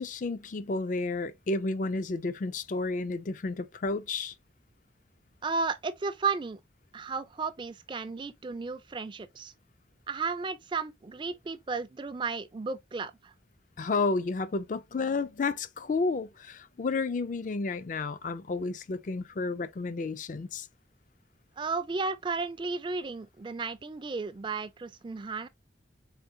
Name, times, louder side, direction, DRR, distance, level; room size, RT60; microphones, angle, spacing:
voice 1, 0.0-4.3 13.8-20.7, left 3 dB, 45° left, 0.4 m, -31 dB
voice 2, 5.4-6.6 6.9-9.5 10.1-13.3 21.6-25.5, right 4 dB, 25° right, 0.4 m, -33 dB
4.3 x 3.6 x 2.7 m
head